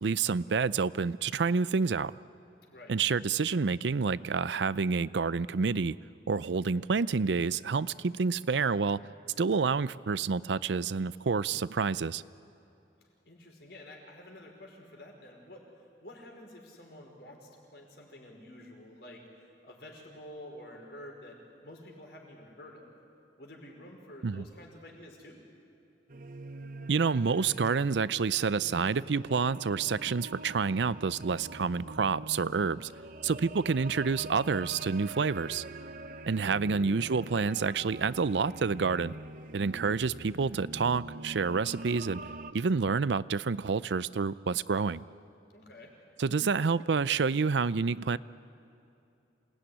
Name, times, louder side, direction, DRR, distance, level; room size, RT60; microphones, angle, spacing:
voice 1, 0.0-2.1 2.9-6.0 6.3-9.0 9.4-12.2 24.2-24.4 26.9-32.9 33.2-35.6 36.3-39.1 39.5-42.2 42.5-45.0 46.2-48.2, right 5 dB, 85° right, 18 dB, 0.5 m, -28 dB
voice 2, 2.7-3.0 13.3-22.9 23.4-25.4 45.5-45.9, left 1 dB, 65° left, 1 dB, 5.3 m, -49 dB
sound 1, 26.1-42.5, right 2 dB, 50° right, 0.9 m, -44 dB
27.5 x 19.0 x 10.0 m, 2.7 s
head